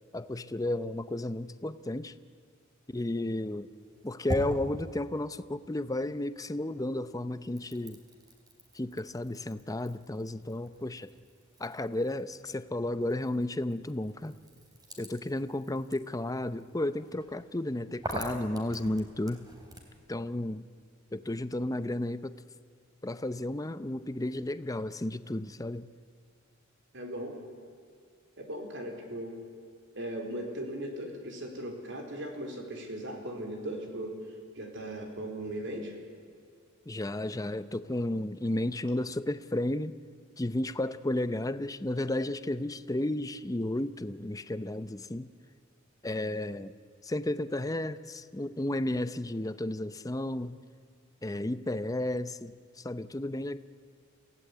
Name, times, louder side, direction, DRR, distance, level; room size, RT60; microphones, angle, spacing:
voice 1, 0.1-2.1 2.9-3.7 4.0-8.0 8.7-11.1 11.6-14.4 15.0-19.4 20.1-20.6 21.1-22.4 23.0-25.9 36.9-39.9 40.4-45.3 46.0-46.7 47.0-50.6 51.2-53.6, left 1 dB, 15° left, 13 dB, 0.7 m, -33 dB
sound 1, 3.7-6.4 6.7-20.0, right 1 dB, 20° right, 3.4 m, -44 dB
voice 2, 26.9-27.4 28.4-29.4 29.9-34.2 34.5-35.9, right 1 dB, 60° right, 2 dB, 4.2 m, -38 dB
27.5 x 17.0 x 8.5 m, 2.3 s
head